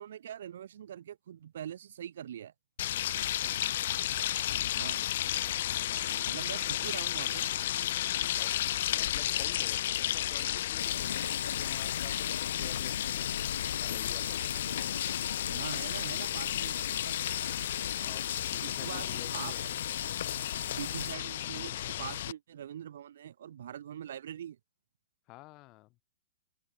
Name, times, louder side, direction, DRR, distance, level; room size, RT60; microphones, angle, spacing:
voice 1, 0.0-2.5 4.7-5.0 6.2-7.5 15.5-17.2 18.6-19.5 20.8-24.6, right 10 dB, 60° right, 2.6 m, -43 dB
sound 1, 2.8-22.3, left 12 dB, 50° left, 1.3 m, -33 dB
voice 2, 5.9-6.2 6.6-7.0 8.3-8.6 8.9-13.3 13.8-14.9 17.9-19.7 25.3-26.0, left 21 dB, 25° left, 6.5 m, -51 dB
sound 2, 10.8-21.2, left 8 dB, 80° left, 0.9 m, -38 dB
open air
hypercardioid pair, 170°, 0 cm